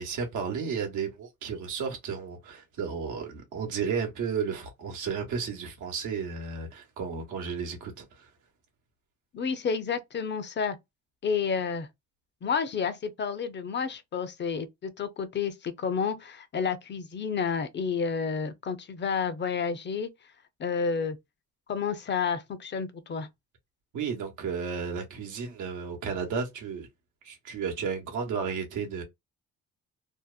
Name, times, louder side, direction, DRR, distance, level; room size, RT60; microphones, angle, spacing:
voice 1, 0.0-8.3 23.9-26.9 27.2-29.0, right 6 dB, 85° right, 0.9 m, -33 dB
voice 2, 9.3-10.8 11.2-11.9 12.4-20.1 20.6-21.2 21.7-23.3, left 6 dB, 35° left, 0.5 m, -30 dB
2.7 x 2.0 x 2.3 m
cardioid pair, 90°, 30 cm